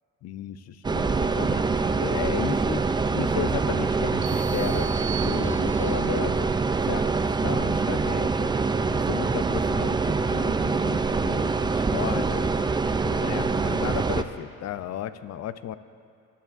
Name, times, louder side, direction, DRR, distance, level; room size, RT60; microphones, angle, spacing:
voice 1, 0.2-2.8 3.1-4.9 5.2-6.5 6.9-7.1 7.4-8.5 8.9-12.5 12.9-15.8, left 11 dB, 60° left, 14 dB, 0.5 m, -34 dB
sound 1, 0.8-14.2, right 4 dB, 15° right, 0.3 m, -25 dB
sound 2, 4.2-6.1, right 8 dB, 70° right, 0.7 m, -38 dB
18.0 x 10.0 x 2.5 m, 2.5 s
cardioid pair, 90°, 30 cm